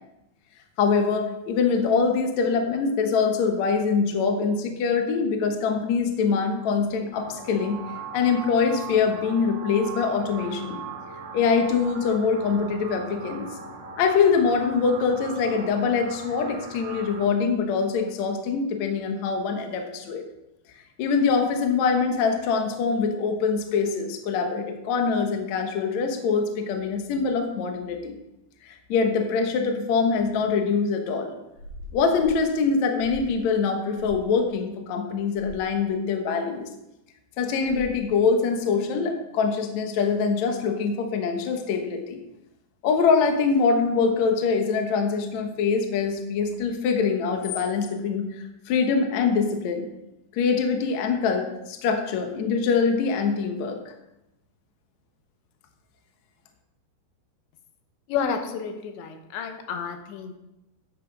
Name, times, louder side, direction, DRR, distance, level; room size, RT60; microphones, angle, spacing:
voice 1, 0.8-7.8 8.1-10.8 11.3-13.6 14.0-20.2 21.0-28.2 28.6-31.3 31.9-36.7 37.4-42.2 42.8-49.9 50.3-53.8, left 5 dB, 70° left, 4 dB, 1.7 m, -24 dB
sound 1, 7.1-17.2, right 5 dB, 50° right, 2.3 m, -39 dB
sound 2, 31.5-32.4 33.0-33.4 33.9-34.2 35.3-35.6 37.7-38.0, left 2 dB, 45° left, 3.1 m, -41 dB
voice 2, 58.1-60.4, left 6 dB, 90° left, 6 dB, 3.4 m, -30 dB
10.5 x 7.9 x 5.1 m, 0.92 s
omnidirectional pair, 5.0 m